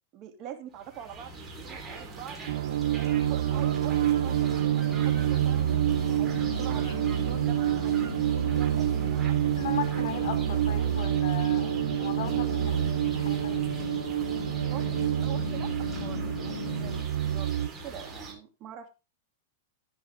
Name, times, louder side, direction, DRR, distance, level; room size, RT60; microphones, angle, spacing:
voice 1, 0.1-2.4 2.9-9.4 14.7-16.9 17.2-17.5 17.8-18.9, right 10 dB, 40° right, 2.7 m, -44 dB
sound 1, 0.7-18.3, right 3 dB, 15° right, 3.7 m, -43 dB
sound 2, 2.5-17.7, right 12 dB, 70° right, 0.7 m, -27 dB
sound 3, 3.4-17.0, left 10 dB, 85° left, 0.4 m, -39 dB
voice 2, 9.4-13.7, left 9 dB, 60° left, 2.9 m, -38 dB
15.0 x 5.4 x 3.6 m
hypercardioid pair, 135°, 0 cm